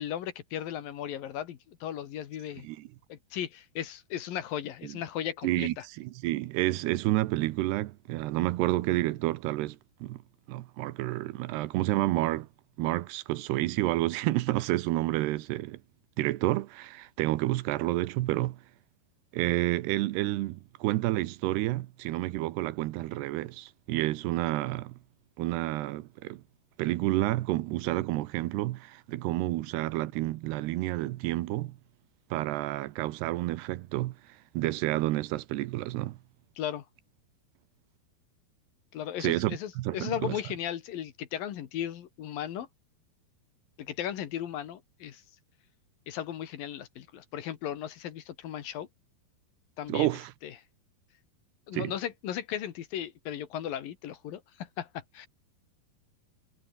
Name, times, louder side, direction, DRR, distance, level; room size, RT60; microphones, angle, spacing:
voice 1, 0.0-2.7 3.1-5.8 36.6-36.8 38.9-42.7 43.8-45.2 46.1-48.9 49.8-50.1 50.4-50.5 51.7-55.3, left 10 dB, 65° left, 3.2 m, -36 dB
voice 2, 5.4-10.2 10.5-12.5 12.8-15.8 16.2-18.6 19.3-25.0 25.4-26.4 26.8-31.8 32.3-36.2 39.2-40.4 49.9-50.3 51.7-51.9, right 17 dB, 80° right, 2.9 m, -30 dB
omnidirectional pair, 4.8 m